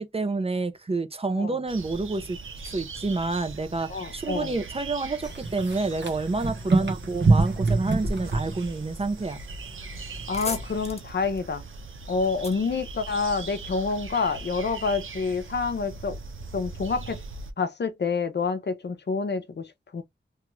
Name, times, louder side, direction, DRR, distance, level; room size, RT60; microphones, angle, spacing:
voice 1, 0.0-2.4 2.7-9.4, right 3 dB, 30° right, 0.5 m, -29 dB
sound 1, 1.7-17.5, right 3 dB, 80° right, 0.7 m, -40 dB
voice 2, 3.9-4.6 6.8-6.9 10.3-11.6 12.1-16.2 16.5-17.2 17.6-20.0, left 4 dB, 60° left, 0.6 m, -28 dB
sound 2, 5.2-10.9, right 3 dB, 65° right, 1.1 m, -27 dB
sound 3, 10.3-13.7, left 3 dB, 30° left, 1.0 m, -40 dB
3.0 x 2.4 x 3.0 m
wide cardioid pair, 100°, 20 cm